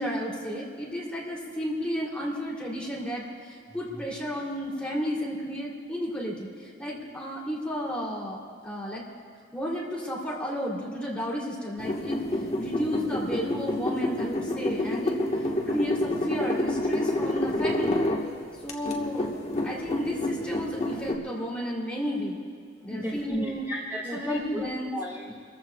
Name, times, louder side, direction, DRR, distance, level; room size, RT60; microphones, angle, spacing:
voice 1, 0.0-6.5 6.8-9.0 9.5-12.2 12.6-15.2 15.7-18.0 18.6-19.3 19.6-22.4 22.8-23.6 24.0-24.9, equal, 5° left, -4 dB, 2.8 m, -32 dB
sound 1, 11.8-18.3 18.7-21.2, left 1 dB, 35° left, 1.3 m, -28 dB
voice 2, 22.9-24.6 24.9-25.3, equal, 15° right, -6 dB, 1.8 m, -34 dB
28.5 x 14.5 x 2.3 m, 2.3 s
head